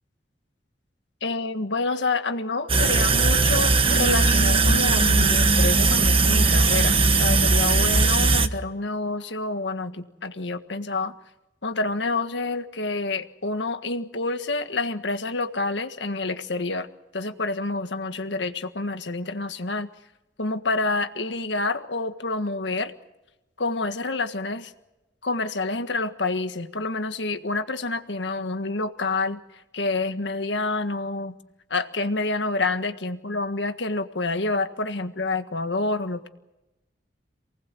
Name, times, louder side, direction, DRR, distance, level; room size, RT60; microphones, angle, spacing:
voice 1, 1.2-11.1 11.6-16.9 17.1-19.9 20.4-22.9 23.6-24.7 25.2-29.4 29.7-31.4 31.7-36.3, left 3 dB, 85° left, 8 dB, 1.7 m, -28 dB
sound 1, 2.7-8.5, right 3 dB, 30° right, 1.2 m, -19 dB
28.0 x 19.0 x 7.7 m, 0.96 s
head